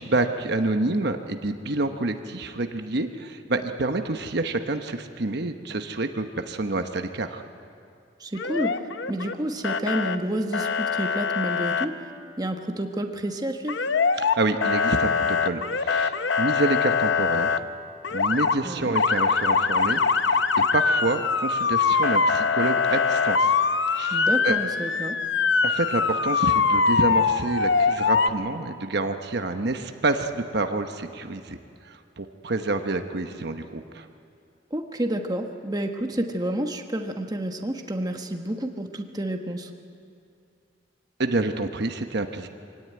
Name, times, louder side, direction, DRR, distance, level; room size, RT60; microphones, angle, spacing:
voice 1, 0.0-7.4 14.2-17.6 18.1-20.0 20.3-20.4 20.7-23.6 23.9-24.6 25.6-31.6 31.8-34.1 41.2-42.5, right 2 dB, 60° right, 7 dB, 1.0 m, -28 dB
voice 2, 8.2-8.8 9.1-12.0 12.4-13.9 18.6-18.9 24.1-25.2 34.7-39.7, right 1 dB, 20° right, 4 dB, 1.2 m, -29 dB
Motor vehicle (road) / Siren, 8.4-9.3 9.6-10.2 10.5-11.9 13.7-14.3 14.6-17.6 18.0-18.5 18.9-28.3, left 5 dB, 70° left, 0.8 m, -23 dB
23.5 x 17.0 x 9.3 m, 2.4 s
head